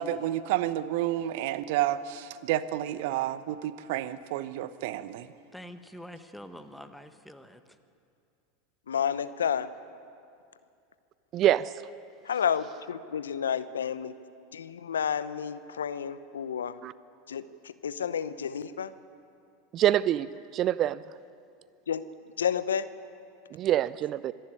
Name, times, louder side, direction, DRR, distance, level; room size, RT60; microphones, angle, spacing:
voice 1, 0.0-5.3, right 13 dB, 65° right, 15 dB, 0.9 m, -30 dB
voice 2, 5.5-7.6, equal, 5° left, 9 dB, 1.4 m, -45 dB
voice 3, 8.9-9.7 12.2-14.1 14.5-16.8 17.3-18.9 21.9-22.0 22.4-22.9, left 8 dB, 80° left, 14 dB, 0.8 m, -30 dB
voice 4, 11.3-11.7 16.8-16.9 19.7-21.0 23.5-24.3, right 12 dB, 40° right, 18 dB, 0.5 m, -25 dB
25.5 x 11.5 x 9.9 m, 2.5 s
hypercardioid pair, 90°, 0 cm